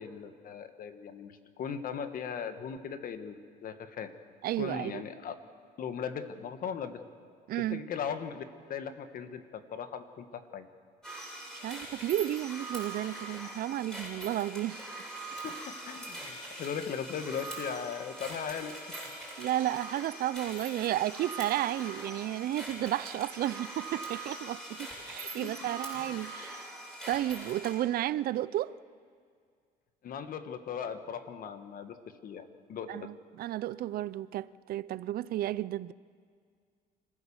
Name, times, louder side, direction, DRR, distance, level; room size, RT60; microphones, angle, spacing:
voice 1, 0.0-4.1 4.6-5.3 5.8-7.0 7.6-8.4 8.7-10.7 15.4-19.0 25.4-25.7 30.0-32.0 32.2-33.1, left 7 dB, 55° left, 1.5 m, -38 dB
voice 2, 4.4-5.0 7.5-7.9 11.5-14.9 19.4-26.7 27.1-28.8 32.9-35.9, right 13 dB, 60° right, 0.5 m, -32 dB
sound 1, 11.0-27.7, right 2 dB, 5° left, 7.4 m, -42 dB
26.0 x 15.0 x 7.2 m
cardioid pair, 110°, 17 cm